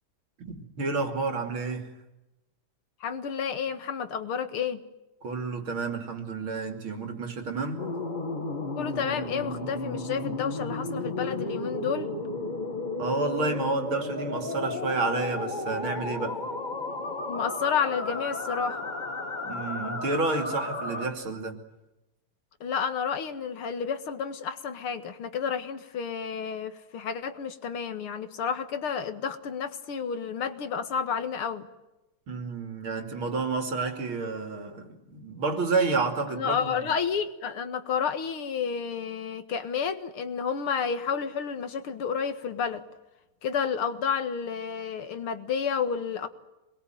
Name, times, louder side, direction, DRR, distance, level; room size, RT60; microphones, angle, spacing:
voice 1, 0.4-1.9 5.2-7.9 13.0-16.4 19.4-21.6 32.3-36.8, right 3 dB, 70° right, 3.6 m, -30 dB
voice 2, 3.0-4.8 8.8-12.1 17.3-18.9 22.6-31.7 36.3-42.8 43.4-46.3, left 6 dB, 85° left, 2.6 m, -30 dB
sound 1, 7.8-21.1, left 2 dB, 20° left, 1.9 m, -33 dB
27.0 x 21.5 x 9.3 m
omnidirectional pair, 2.3 m